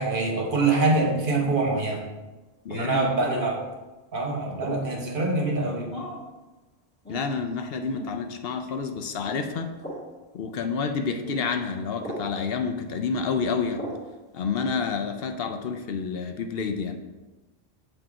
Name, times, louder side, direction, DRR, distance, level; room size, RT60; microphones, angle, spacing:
voice 1, 0.0-2.1 2.7-3.6 4.1-6.0, right 3 dB, 55° right, 0 dB, 1.2 m, -25 dB
sound 1, 1.4-1.7 3.1-3.5 4.6-4.9 5.9-6.3 7.0-7.3 7.9-8.1 9.2-9.4 9.8-10.0 11.2-11.4 12.0-12.3 13.7-14.0, equal, 10° left, 1.7 m, -36 dB
voice 2, 2.6-3.1 7.1-9.7 10.3-13.8 14.3-17.0, left 5 dB, 70° left, 6 dB, 0.8 m, -29 dB
7.6 x 3.0 x 4.8 m, 1.1 s
omnidirectional pair, 1.1 m